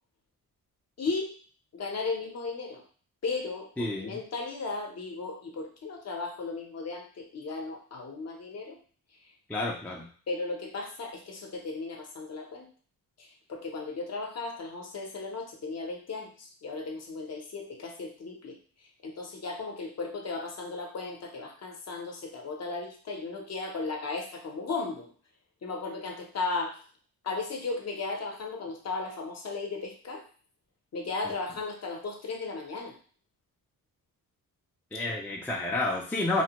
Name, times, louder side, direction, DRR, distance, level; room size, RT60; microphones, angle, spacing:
voice 1, 1.0-1.3 1.7-2.8 3.2-8.8 10.3-12.7 13.2-18.6 19.0-25.1 25.6-26.8 27.2-30.2 30.9-32.9, left 3 dB, 50° left, 1 dB, 0.7 m, -35 dB
voice 2, 3.8-4.2 9.5-10.1 34.9-36.4, left 2 dB, 5° left, -1 dB, 0.4 m, -30 dB
3.2 x 2.1 x 2.9 m, 0.43 s
wide cardioid pair, 130°, 35 cm